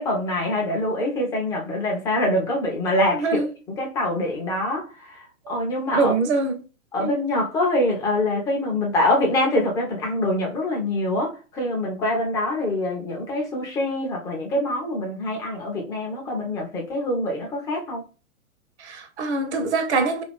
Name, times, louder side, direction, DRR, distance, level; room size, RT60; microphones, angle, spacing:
voice 1, 0.0-3.4 3.8-5.2 5.5-6.1 6.9-18.0, left 1 dB, 10° left, 0.4 m, -24 dB
voice 2, 3.1-3.5 5.5-5.6 5.9-6.6 7.0-7.2 18.8-20.2, right 3 dB, 55° right, 0.8 m, -24 dB
2.6 x 2.2 x 3.4 m
figure-of-eight pair, 115°, 41 cm